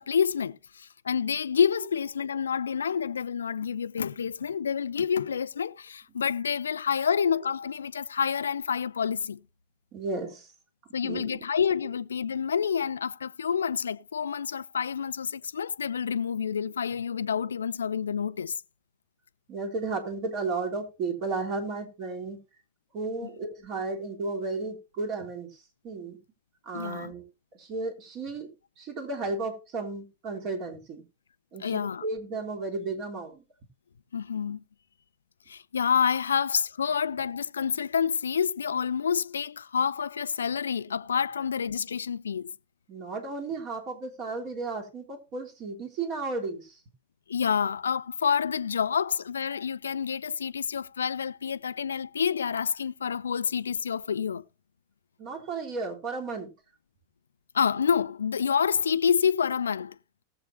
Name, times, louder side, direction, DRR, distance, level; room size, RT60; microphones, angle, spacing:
voice 1, 0.0-9.4 10.9-18.6 26.7-27.1 31.6-32.0 34.1-34.6 35.5-42.5 47.3-54.4 57.5-60.0, left 7 dB, 70° left, 0.6 m, -28 dB
voice 2, 9.9-10.5 11.0-11.4 19.5-22.4 22.9-26.2 26.6-27.2 27.5-31.0 31.5-33.4 42.9-46.8 55.2-56.5, right 3 dB, 40° right, 3.4 m, -34 dB
19.5 x 7.8 x 2.7 m
figure-of-eight pair, 90°, 0 cm